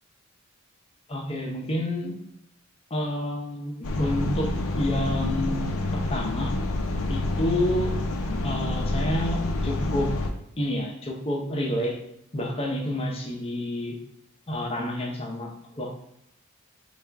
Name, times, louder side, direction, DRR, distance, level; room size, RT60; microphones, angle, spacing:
voice 1, 1.1-2.2 2.9-6.5 7.1-7.9 8.4-10.2 10.6-12.0 12.3-14.0 14.5-16.0, left 1 dB, 30° left, 1 dB, 0.6 m, -29 dB
sound 1, 3.8-10.3, left 2 dB, 75° left, 0.5 m, -28 dB
3.4 x 2.4 x 4.4 m, 0.81 s
head